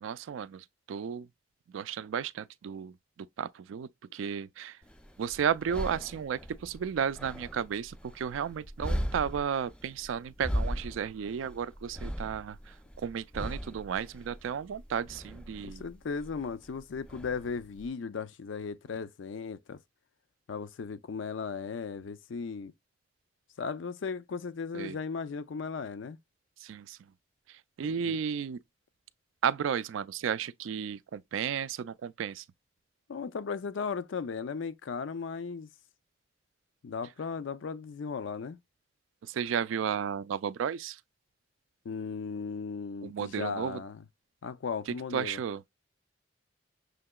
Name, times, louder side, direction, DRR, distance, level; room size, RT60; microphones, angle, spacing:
voice 1, 0.0-1.3 1.7-4.8 5.2-15.8 24.7-25.0 26.6-27.0 27.5-28.6 29.4-32.4 39.2-41.0 43.0-43.8 44.9-45.6, right 7 dB, 85° right, 0.3 m, -33 dB
sound 1, 4.8-17.9, equal, 5° left, 0.3 m, -39 dB
voice 2, 15.6-19.8 20.5-22.7 23.6-26.2 28.0-28.2 33.1-35.7 36.8-38.6 41.8-44.0 44.4-45.4, left 5 dB, 80° left, 0.4 m, -36 dB
6.3 x 2.8 x 2.2 m
head